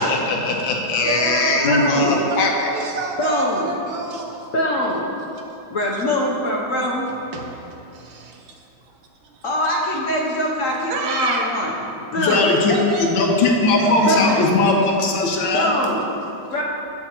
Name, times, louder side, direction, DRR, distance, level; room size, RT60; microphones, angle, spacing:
voice 1, 0.0-2.5 12.2-12.7 13.0-15.7, left 3 dB, 80° left, 0 dB, 1.6 m, -19 dB
voice 2, 1.0-4.5 5.9-6.0 7.3-8.6 9.2-9.4 10.9-11.5 12.3-12.4 12.7-13.3 13.6-14.6, right 3 dB, 85° right, 1 dB, 1.7 m, -29 dB
voice 3, 1.7-2.3 3.2-3.7 4.5-5.1 5.7-7.1 9.4-11.7 12.1-12.5 14.1-14.5 15.5-16.1 16.5-16.6, left 1 dB, 55° left, -3 dB, 0.9 m, -23 dB
14.0 x 4.8 x 2.9 m, 2.9 s
omnidirectional pair, 2.1 m